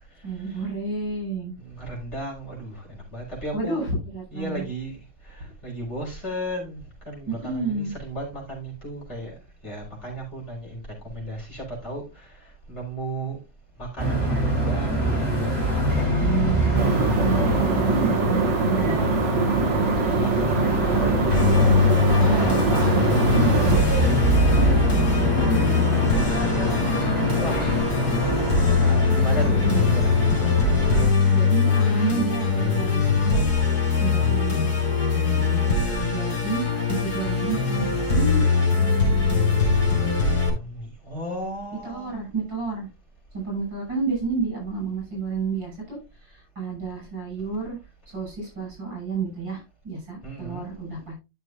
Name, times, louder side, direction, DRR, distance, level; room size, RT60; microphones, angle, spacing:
voice 1, 0.2-1.6 3.5-4.7 7.3-7.9 16.2-16.8 17.2-19.0 22.2-26.1 27.1-27.9 29.4-30.1 31.3-33.4 34.0-34.8 35.7-36.6 36.9-38.4 41.8-42.9 43.3-47.8 48.1-51.1, right 4 dB, 75° right, -1 dB, 7.2 m, -31 dB
voice 2, 1.6-3.9 4.3-5.0 5.3-6.8 7.0-9.3 9.6-12.3 12.7-13.4 13.8-15.6 20.2-21.4 27.2-30.3 30.9-31.1 35.3-36.4 37.2-37.5 40.5-42.1 50.2-50.7, right 1 dB, 35° left, -3 dB, 4.8 m, -35 dB
sound 1, 14.0-31.1, right 1 dB, 30° right, 4.1 m, -25 dB
sound 2, 16.7-23.8, right 4 dB, 45° right, 1.1 m, -23 dB
Musical instrument, 21.3-40.5, left 5 dB, 55° left, 4.1 m, -22 dB
12.5 x 6.4 x 2.5 m, 0.25 s
omnidirectional pair, 2.0 m